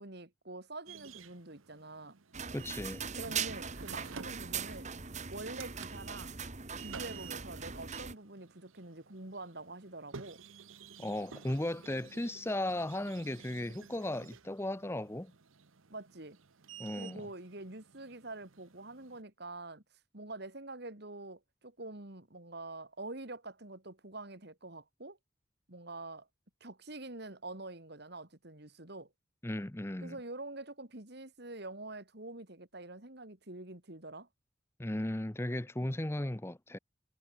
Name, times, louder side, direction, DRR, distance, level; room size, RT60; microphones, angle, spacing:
voice 1, 0.0-2.2 3.1-4.9 5.3-6.4 6.8-10.4 15.9-16.4 17.0-19.8 20.1-25.2 25.7-26.3 26.6-29.1 30.0-34.3 35.8-36.0, right 2 dB, 55° right, 2.7 m, -46 dB
sound 1, 0.9-19.2, right 6 dB, 85° right, 1.1 m, -53 dB
sound 2, 2.3-8.1, right 6 dB, 35° right, 1.8 m, -40 dB
voice 2, 2.5-3.0 11.0-15.3 16.8-17.2 29.4-30.2 34.8-36.8, left 1 dB, 10° left, 0.7 m, -36 dB
head